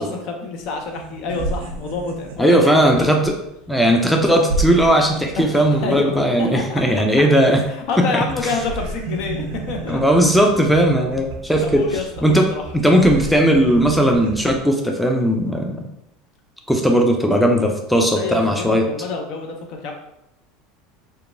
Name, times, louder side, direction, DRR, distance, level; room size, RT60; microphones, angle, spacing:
voice 1, 0.0-3.2 5.4-5.5 5.8-6.8 7.5-10.0 11.6-12.6 18.1-19.9, left 4 dB, 60° left, 3 dB, 0.5 m, -27 dB
sound 1, 0.6-0.7 0.9-7.9 8.2-14.6, right 3 dB, 80° right, 0.4 m, -32 dB
voice 2, 2.4-3.4 3.7-7.6 8.1-8.5 9.9-11.8 12.2-12.5 12.7-15.8 16.7-18.9, right 1 dB, ahead, 2 dB, 0.4 m, -17 dB
2.8 x 2.2 x 2.5 m, 0.80 s
hypercardioid pair, 85°, 0 cm